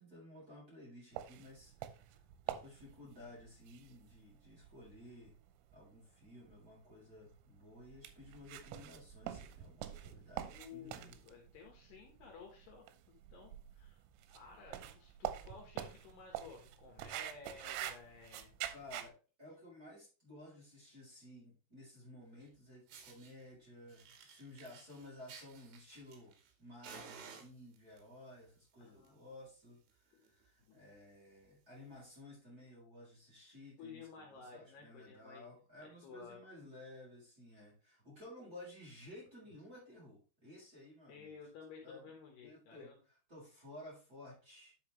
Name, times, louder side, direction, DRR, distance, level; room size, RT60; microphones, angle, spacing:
voice 1, 0.0-2.1 2.5-5.4 5.7-11.2 18.7-19.1 19.4-41.4 41.8-42.1 42.4-44.7, left 1 dB, 20° right, -6 dB, 3.7 m, -55 dB
sound 1, 1.2-19.1, right 12 dB, 90° right, 3.4 m, -47 dB
voice 2, 10.4-14.0 14.3-18.5 28.8-29.3 30.1-30.2 30.7-30.8 33.8-35.5 35.8-36.4 41.1-43.0, left 5 dB, 65° left, 0 dB, 3.1 m, -54 dB
Fire, 22.4-22.5 22.9-23.3 23.9-26.5 26.8-28.0 28.8-29.1 29.4-29.5 29.9-30.0 30.2-30.5 31.0-31.1 32.0-32.1, right 6 dB, 70° right, 3.9 m, -55 dB
10.0 x 5.8 x 3.2 m, 0.35 s
omnidirectional pair, 5.6 m